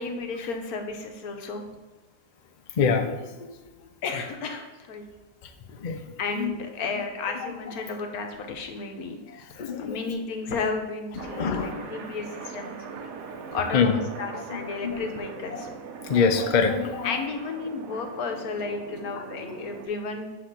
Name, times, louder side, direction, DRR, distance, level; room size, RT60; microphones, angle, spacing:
voice 1, 0.0-1.6 4.0-5.0 6.2-9.2 9.8-12.7 13.5-15.7 17.0-20.3, left 4 dB, 80° left, 4 dB, 1.3 m, -33 dB
voice 2, 2.7-3.5 3.8-3.9 5.4-6.5 7.3-7.5 9.3-10.0 11.1-11.9 13.3-13.4 13.7-13.9 14.3-15.0 15.5-15.6 16.0-17.2 19.1-19.6, left 5 dB, 55° left, 6 dB, 0.5 m, -27 dB
sound 1, 11.2-19.9, right 5 dB, 75° right, 1.1 m, -40 dB
7.7 x 3.0 x 5.8 m, 1.2 s
omnidirectional pair, 1.5 m